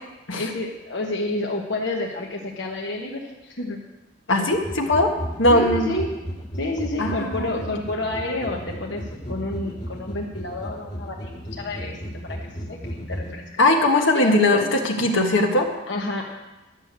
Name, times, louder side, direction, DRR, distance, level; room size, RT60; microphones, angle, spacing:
voice 1, 0.3-3.8 5.5-6.1 6.5-12.0 12.3-12.4 12.7-13.4 14.1-14.6 15.9-16.2, left 2 dB, 60° left, -1 dB, 1.2 m, -29 dB
voice 2, 4.3-5.1 5.4-5.9 7.0-7.5 13.6-15.7, left 2 dB, 80° left, 2 dB, 1.6 m, -19 dB
sound 1, 4.5-13.4, equal, 40° left, 2.1 m, -34 dB
12.0 x 6.7 x 8.0 m, 1.1 s
head